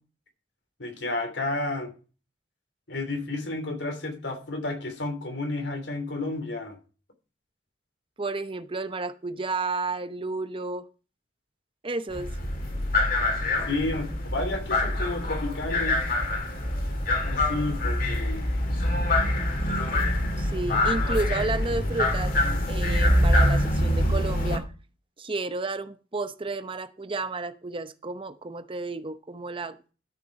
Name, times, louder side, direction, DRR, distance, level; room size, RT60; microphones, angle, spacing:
voice 1, 0.8-1.9 2.9-6.8 13.7-16.0 17.2-18.4, left 2 dB, 80° left, 3.1 m, -31 dB
voice 2, 8.2-10.9 11.8-12.3 20.4-22.4 22.7-24.7 25.2-29.8, right 3 dB, 30° right, 0.8 m, -32 dB
sound 1, 12.1-24.6, left 1 dB, 55° left, 2.8 m, -25 dB
12.5 x 6.8 x 4.8 m
head